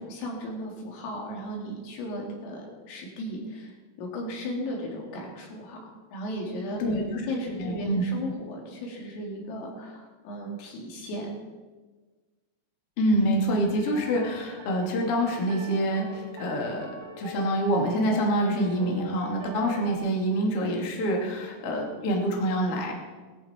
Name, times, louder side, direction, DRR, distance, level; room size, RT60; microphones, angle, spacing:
voice 1, 0.0-5.8 6.1-11.3, equal, 75° left, -1 dB, 5.4 m, -36 dB
voice 2, 6.8-7.2 7.6-8.0 13.0-22.9, equal, 40° left, -1 dB, 2.4 m, -26 dB
sound 1, 13.7-19.9, right 1 dB, 50° right, 3.9 m, -42 dB
19.5 x 14.0 x 4.4 m, 1.3 s
omnidirectional pair, 6.0 m